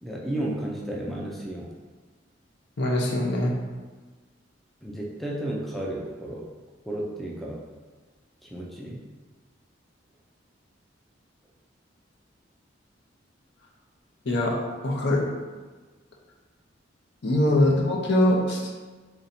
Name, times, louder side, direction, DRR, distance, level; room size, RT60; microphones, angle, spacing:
voice 1, 0.0-1.7 4.8-6.5 6.9-7.6 8.4-9.1 17.6-17.7, right 1 dB, ahead, -3 dB, 0.4 m, -33 dB
voice 2, 2.8-3.5 14.3-14.6 14.8-15.3 17.2-18.6, left 1 dB, 65° left, -1 dB, 0.7 m, -22 dB
3.2 x 2.7 x 4.1 m, 1.4 s
head